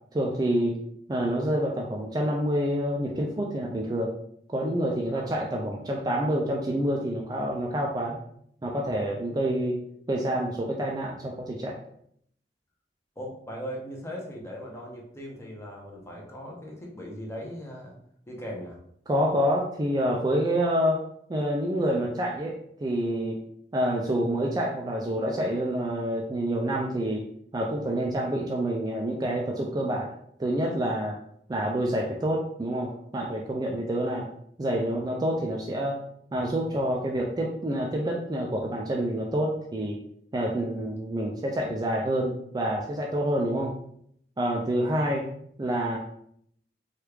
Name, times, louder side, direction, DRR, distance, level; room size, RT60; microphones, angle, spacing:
voice 1, 0.1-0.8 1.1-4.1 4.5-8.2 8.6-9.8 10.1-11.8 19.1-21.0 21.3-23.4 23.7-27.2 27.5-30.1 30.4-31.2 31.5-34.3 34.6-36.0 36.3-40.0 40.3-43.7 44.4-45.3 45.6-46.0, right 1 dB, 20° right, -1 dB, 0.3 m, -27 dB
voice 2, 13.2-17.9 18.3-18.8, equal, 15° left, -2 dB, 0.6 m, -39 dB
3.0 x 2.3 x 3.3 m, 0.69 s
head